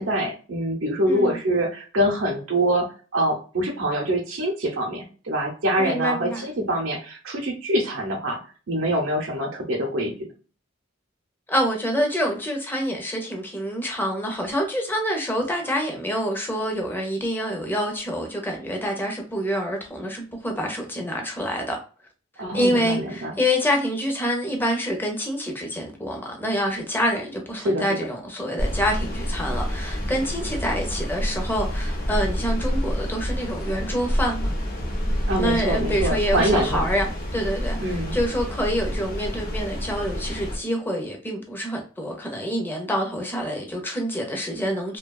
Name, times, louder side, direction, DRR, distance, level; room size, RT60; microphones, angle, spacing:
voice 1, 0.0-2.9 3.1-8.4 8.7-10.1 22.4-23.3 27.6-28.0 35.3-36.9 37.8-38.2, right 1 dB, 85° right, 0.6 m, -24 dB
voice 2, 1.1-1.4 5.8-6.5 11.5-21.8 22.5-34.5 35.4-45.0, equal, 10° left, 0.6 m, -27 dB
sound 1, 28.6-40.6, equal, 50° left, 0.7 m, -28 dB
2.7 x 2.2 x 2.2 m
head